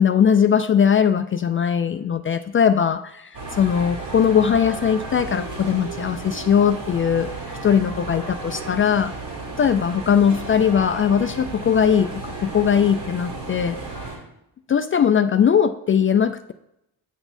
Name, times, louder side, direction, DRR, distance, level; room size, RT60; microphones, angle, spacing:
voice 1, 0.0-7.3 7.6-9.1 9.6-13.8 14.7-16.5, left 8 dB, 30° left, 9 dB, 0.3 m, -20 dB
sound 1, 3.3-14.2, right 3 dB, 60° right, 2.8 m, -33 dB
9.1 x 5.9 x 2.6 m, 0.83 s
supercardioid pair, 60°, 45 cm